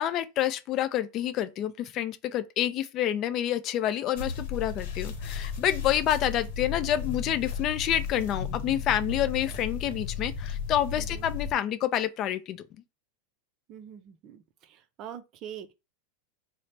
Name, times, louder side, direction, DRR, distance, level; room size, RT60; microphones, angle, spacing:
voice 1, 0.0-12.6, left 11 dB, 40° left, 0.3 m, -28 dB
sound 1, 4.2-11.5, left 6 dB, 70° left, 0.9 m, -34 dB
voice 2, 11.0-11.3 13.7-15.7, right 9 dB, 40° right, 0.4 m, -44 dB
3.2 x 2.0 x 4.0 m
supercardioid pair, 130°, 0 cm